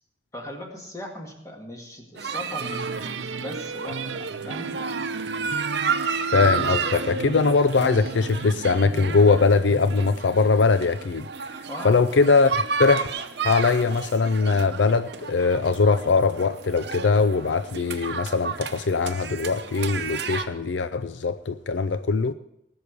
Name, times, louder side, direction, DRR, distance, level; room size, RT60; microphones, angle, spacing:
voice 1, 0.3-5.2 11.7-12.0, left 1 dB, 15° left, 2.0 m, -39 dB
sound 1, 2.2-20.5, right 5 dB, 60° right, 0.9 m, -32 dB
sound 2, 2.6-10.2, right 3 dB, 90° right, 0.7 m, -34 dB
voice 2, 6.3-11.2 11.8-12.5 12.8-13.1 13.4-22.3, left 4 dB, 70° left, 0.5 m, -21 dB
19.0 x 6.5 x 6.8 m
head